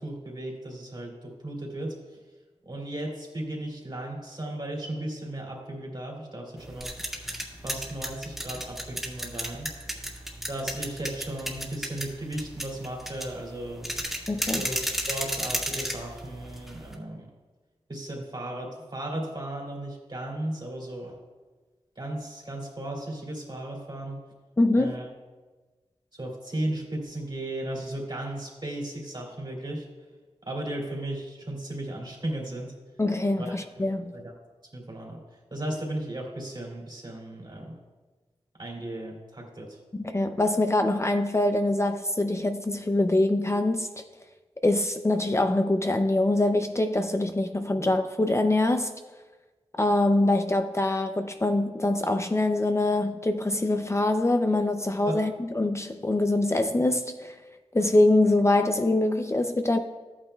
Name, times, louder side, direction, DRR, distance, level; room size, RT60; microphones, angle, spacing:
voice 1, 0.0-2.2 2.7-6.9 7.6-9.7 10.5-13.9 14.5-17.3 17.9-21.2 22.0-24.2 24.7-25.1 26.1-29.9 30.4-32.7 33.3-33.5 34.1-34.3 34.7-35.2 35.5-37.8 38.6-39.8 47.8-47.9 55.1-55.2, right 1 dB, 40° right, 2.6 m, -35 dB
sound 1, 6.6-16.9, equal, ahead, 1.7 m, -33 dB
voice 2, 14.3-14.7 24.6-25.0 33.0-34.1 39.9-43.9 44.6-48.9 49.8-57.4 57.7-59.8, left 2 dB, 25° left, 0.5 m, -24 dB
13.5 x 8.9 x 2.3 m
wide cardioid pair, 60°, 11 cm